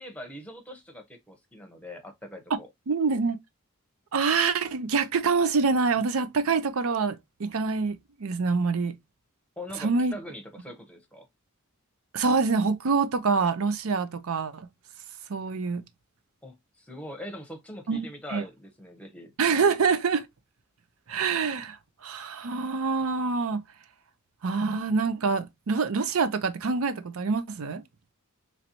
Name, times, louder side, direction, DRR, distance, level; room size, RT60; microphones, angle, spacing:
voice 1, 0.0-2.7 9.6-11.2 16.4-19.3, left 1 dB, 5° left, 0.9 m, -42 dB
voice 2, 2.9-3.4 4.1-8.9 9.8-10.1 12.1-14.7 15.3-15.8 17.9-18.1 18.3-18.4 19.4-20.2 21.1-21.8 22.0-23.6 24.4-27.8, right 4 dB, 70° right, 0.5 m, -26 dB
4.0 x 3.2 x 2.8 m
head